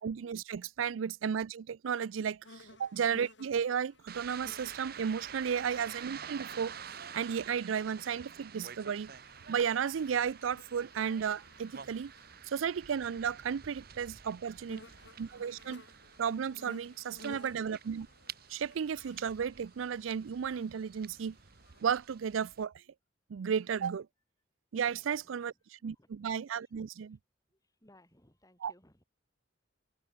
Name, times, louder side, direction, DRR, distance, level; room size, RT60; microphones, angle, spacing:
voice 1, 0.0-6.7 7.1-9.1 9.5-12.1 12.5-14.8 15.2-15.8 16.2-18.1 18.5-21.4 21.8-22.8 23.3-24.1 24.7-27.2 28.6-28.7, right 7 dB, 85° right, 0.4 m, -34 dB
sound 1, 2.4-21.8, left 2 dB, 65° left, 4.6 m, -57 dB
sound 2, 4.1-22.6, right 7 dB, 50° right, 1.2 m, -49 dB
voice 2, 14.3-15.1 24.9-26.7 27.1-27.2 27.5-29.0, left 1 dB, 20° left, 6.8 m, -66 dB
open air
head